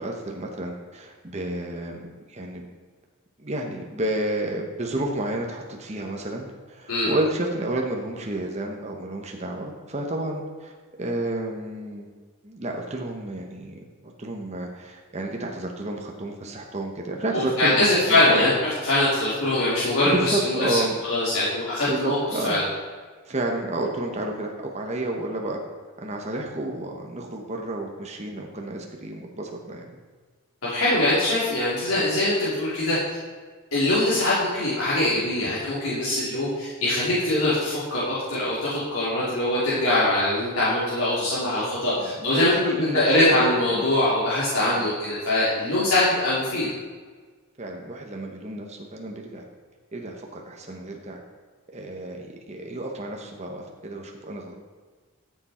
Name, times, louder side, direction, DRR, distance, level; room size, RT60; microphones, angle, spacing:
voice 1, 0.0-2.7 3.4-10.7 11.0-12.1 12.4-18.6 19.1-19.2 20.0-21.0 21.9-22.6 23.2-25.6 26.0-30.0 35.4-35.5 41.4-43.4 43.6-43.9 44.6-44.9 45.9-46.0 47.6-49.4 49.9-51.2 51.7-54.5, right 1 dB, 30° right, 1 dB, 1.1 m, -31 dB
voice 2, 17.3-20.8 21.1-22.2 22.4-22.6 30.6-33.0 33.7-46.7, left 1 dB, 80° left, -10 dB, 3.2 m, -22 dB
13.5 x 7.1 x 4.4 m, 1.5 s
head